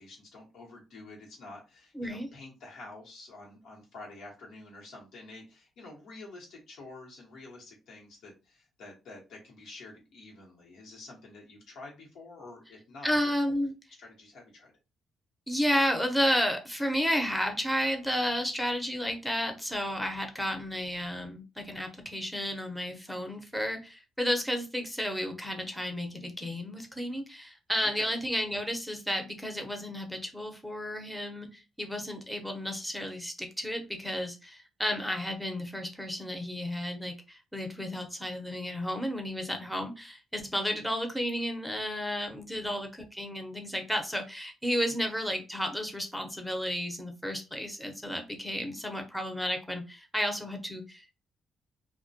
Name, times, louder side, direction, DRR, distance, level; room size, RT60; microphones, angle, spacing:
voice 1, 0.0-13.3 14.0-14.7 27.8-28.1 42.5-42.8, left 2 dB, 80° left, -1 dB, 0.9 m, -48 dB
voice 2, 1.9-2.3 13.0-13.7 15.5-51.2, equal, ahead, 4 dB, 0.6 m, -32 dB
2.1 x 2.1 x 2.7 m, 0.29 s
supercardioid pair, 65°, 0 cm